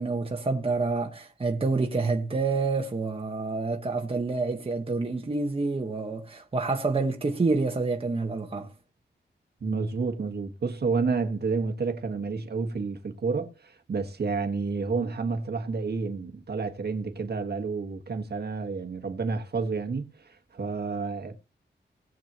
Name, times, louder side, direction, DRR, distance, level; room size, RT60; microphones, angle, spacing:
voice 1, 0.0-8.7, right 3 dB, 30° right, 1.2 m, -28 dB
voice 2, 9.6-21.4, right 4 dB, 60° right, 1.5 m, -30 dB
20.0 x 7.4 x 2.9 m
wide cardioid pair, 170°, 19 cm